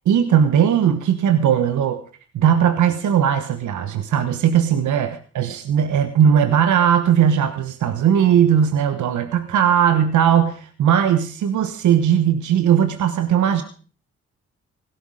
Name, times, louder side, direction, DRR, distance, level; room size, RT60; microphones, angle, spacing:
voice 1, 0.1-2.0 2.3-13.6, right 9 dB, 85° right, 8 dB, 1.2 m, -18 dB
17.0 x 12.0 x 4.9 m, 0.39 s
cardioid pair, 60°, 29 cm